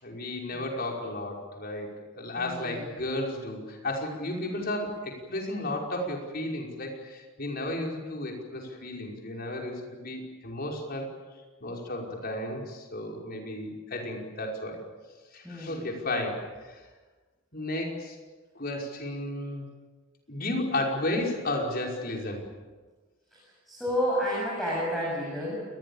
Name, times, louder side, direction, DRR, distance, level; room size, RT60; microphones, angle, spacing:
voice 1, 0.0-11.1 11.6-14.8 15.3-16.8 17.5-18.2 18.6-19.6 20.3-22.4, left 1 dB, 45° left, 0 dB, 5.5 m, -33 dB
voice 2, 2.4-2.9 15.4-15.9 23.7-25.7, equal, ahead, -6 dB, 7.8 m, -30 dB
29.0 x 21.0 x 7.3 m, 1.3 s
head